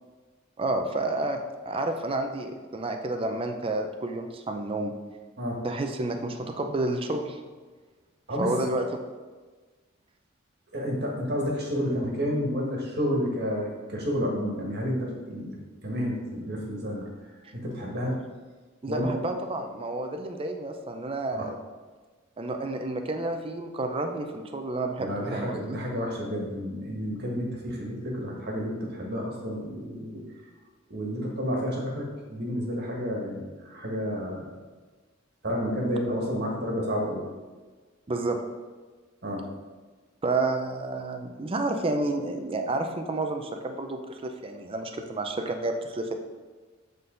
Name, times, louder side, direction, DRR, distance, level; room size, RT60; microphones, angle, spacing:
voice 1, 0.6-4.9 5.6-7.4 8.4-8.8 18.8-21.6 22.4-25.8 38.1-38.4 40.2-46.1, right 2 dB, 25° right, 5 dB, 0.4 m, -30 dB
voice 2, 10.7-17.1 17.5-18.2 18.9-19.1 21.3-21.5 25.0-30.2 30.9-34.5 35.4-37.2 39.2-39.4, equal, 50° right, -1 dB, 1.5 m, -30 dB
7.7 x 3.9 x 3.8 m, 1.4 s
head